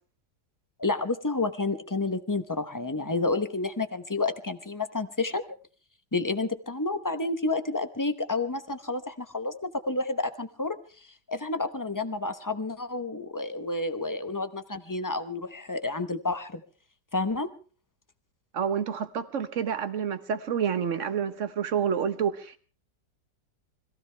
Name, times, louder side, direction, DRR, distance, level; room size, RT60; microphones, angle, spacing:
voice 1, 0.8-5.6 6.1-16.6 17.1-17.5, left 3 dB, 20° left, 8 dB, 0.6 m, -30 dB
voice 2, 18.5-22.6, right 7 dB, 50° right, 11 dB, 1.4 m, -28 dB
25.0 x 15.5 x 3.3 m, 0.37 s
omnidirectional pair, 1.8 m